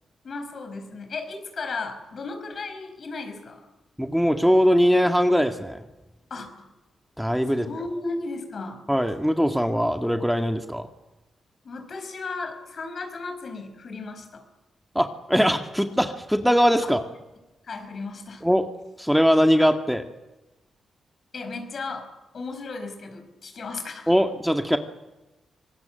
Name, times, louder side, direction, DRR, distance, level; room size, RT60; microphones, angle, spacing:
voice 1, 0.2-3.6 6.3-6.7 7.5-8.8 11.6-14.4 16.8-16.9 17.6-18.4 21.3-24.1, left 3 dB, 55° left, 7 dB, 5.4 m, -35 dB
voice 2, 4.0-5.8 7.2-7.7 8.9-10.9 15.0-17.0 18.4-18.7 19.0-20.0 24.1-24.8, equal, ahead, 6 dB, 2.0 m, -21 dB
25.0 x 19.5 x 7.8 m, 1.1 s
hypercardioid pair, 40°, 0 cm